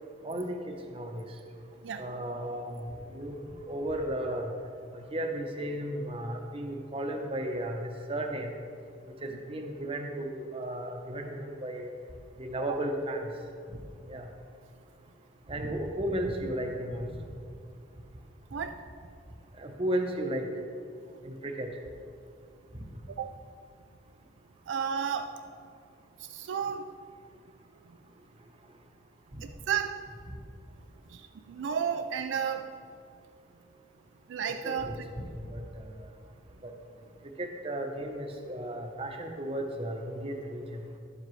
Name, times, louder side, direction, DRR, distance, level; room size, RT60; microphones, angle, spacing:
voice 1, 0.2-1.2 2.0-3.4 3.7-4.5 4.9-8.5 9.2-11.9 12.4-13.3 14.1-14.3 15.5-17.1 19.6-20.5 21.2-21.7 29.3-29.4 34.6-35.9 36.6-36.7 37.4-40.9, right 1 dB, 30° right, 3 dB, 0.8 m, -34 dB
voice 2, 24.7-25.3 26.3-26.8 29.4-30.1 31.1-31.2 31.5-32.8 34.3-34.9, right 7 dB, 70° right, 7 dB, 0.3 m, -32 dB
11.0 x 7.5 x 3.2 m, 2.3 s
head